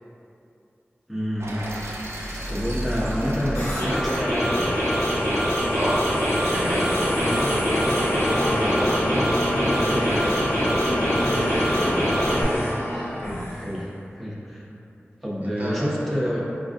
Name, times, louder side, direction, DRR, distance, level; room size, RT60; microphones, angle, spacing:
voice 1, 1.1-1.7 2.2-4.7 11.7-12.1 12.4-12.5 12.9-13.1 13.5-14.6 15.2-16.4, equal, 5° left, -7 dB, 0.6 m, -28 dB
sound 1, 1.4-5.4, equal, 80° right, 0.5 m, -33 dB
sound 2, 3.6-12.4, equal, 80° left, 1.0 m, -24 dB
sound 3, 4.1-13.8, equal, 60° left, 0.7 m, -27 dB
voice 2, 5.7-7.5 8.2-10.6 15.4-16.4, equal, 40° right, -6 dB, 0.6 m, -32 dB
4.4 x 2.4 x 2.4 m, 2.7 s
wide cardioid pair, 60°, 4 cm